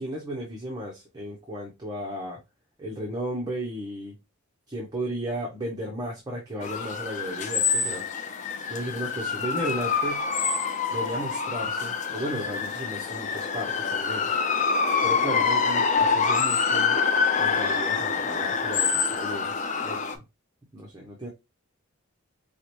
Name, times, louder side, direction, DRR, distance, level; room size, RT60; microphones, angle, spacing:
voice 1, 0.0-2.4 2.8-4.2 4.7-10.2 10.9-14.3 15.0-17.0 17.4-19.5 19.8-20.2 20.7-21.3, equal, 20° right, -2 dB, 0.7 m, -34 dB
sound 1, 6.6-20.1, left 5 dB, 35° left, 0.4 m, -26 dB
4.7 x 2.1 x 2.9 m, 0.24 s
head